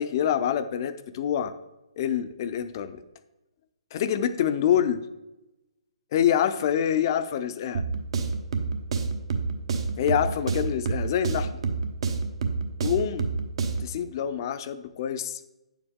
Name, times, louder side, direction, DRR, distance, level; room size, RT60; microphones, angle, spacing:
voice 1, 0.0-1.5 2.0-3.0 3.9-5.0 6.1-7.8 10.0-11.5 12.8-13.3 13.8-15.4, left 9 dB, 40° left, 12 dB, 0.6 m, -26 dB
sound 1, 7.7-14.0, right 4 dB, 55° right, 1.1 m, -29 dB
9.4 x 7.1 x 3.6 m, 1.0 s
figure-of-eight pair, 135°, 3 cm